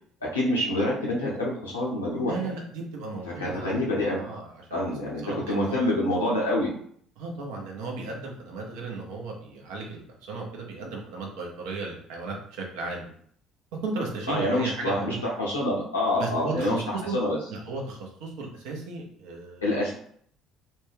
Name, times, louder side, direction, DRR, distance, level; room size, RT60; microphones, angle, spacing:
voice 1, 0.2-2.5 3.4-4.2 4.7-6.7 14.3-17.4 19.6-19.9, left 1 dB, 85° left, -5 dB, 0.8 m, -27 dB
voice 2, 2.2-4.9 5.2-5.8 7.2-13.1 13.8-15.2 16.2-17.2 17.5-19.7, right 3 dB, 65° right, 0 dB, 0.7 m, -35 dB
2.6 x 2.2 x 3.3 m, 0.62 s
figure-of-eight pair, 55°, 0 cm